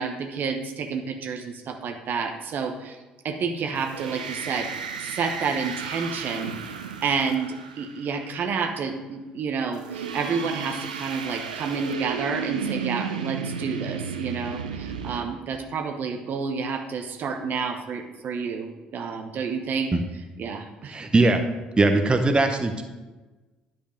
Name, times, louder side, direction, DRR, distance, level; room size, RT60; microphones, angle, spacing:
voice 1, 0.0-3.0 3.2-6.6 7.0-19.9 20.4-21.0, right 5 dB, 50° right, 5 dB, 0.9 m, -29 dB
sound 1, 3.8-8.2 9.7-15.2, right 6 dB, 85° right, 0.5 m, -33 dB
voice 2, 20.9-21.4 21.8-22.8, right 2 dB, 25° right, 6 dB, 0.9 m, -20 dB
10.0 x 5.4 x 5.2 m, 1.2 s
figure-of-eight pair, 55°, 4 cm